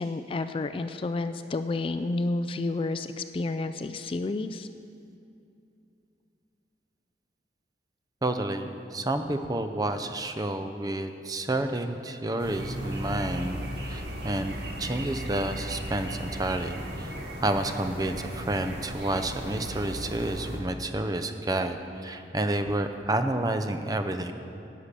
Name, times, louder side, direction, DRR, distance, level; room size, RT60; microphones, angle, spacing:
voice 1, 0.0-4.7, left 2 dB, 30° left, 10 dB, 0.3 m, -30 dB
voice 2, 8.2-17.1 17.4-24.3, right 1 dB, 20° right, 8 dB, 0.6 m, -30 dB
sound 1, 12.4-20.6, equal, 65° right, 1.7 m, -36 dB
11.0 x 6.7 x 8.3 m, 2.7 s
head